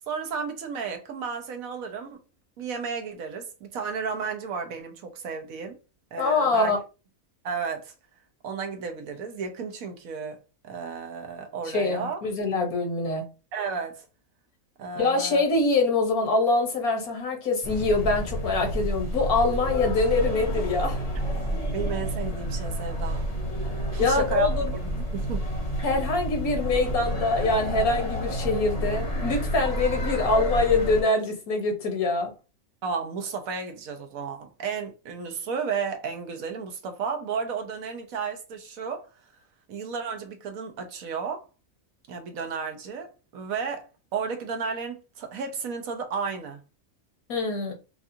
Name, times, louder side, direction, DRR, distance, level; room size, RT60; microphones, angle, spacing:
voice 1, 0.1-2.2 2.6-5.8 6.1-6.7 7.4-7.9 8.4-10.4 10.6-12.2 13.5-14.1 14.8-15.5 21.4-23.3 23.9-24.5 24.8-25.4 32.8-39.1 39.7-41.4 42.1-46.6, right 5 dB, 75° right, 1.2 m, -33 dB
voice 2, 6.2-6.8 11.7-13.3 15.0-21.0 24.0-24.7 25.8-32.3 47.3-47.7, left 3 dB, 80° left, 1.6 m, -24 dB
sound 1, 17.6-31.0, equal, 30° left, 0.9 m, -30 dB
4.6 x 2.4 x 2.6 m
omnidirectional pair, 1.5 m